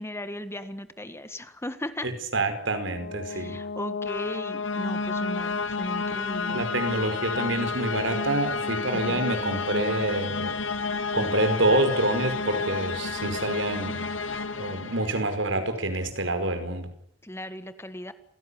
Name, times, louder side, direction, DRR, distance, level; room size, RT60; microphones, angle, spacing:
voice 1, 0.0-2.1 3.3-6.6 17.2-18.1, left 1 dB, 15° left, 11 dB, 1.7 m, -37 dB
voice 2, 2.0-3.6 6.5-10.6 11.1-16.9, right 2 dB, 75° right, 8 dB, 5.0 m, -27 dB
sound 1, 2.6-15.6, left 4 dB, 80° left, 2.1 m, -31 dB
28.5 x 17.5 x 10.0 m, 0.67 s
head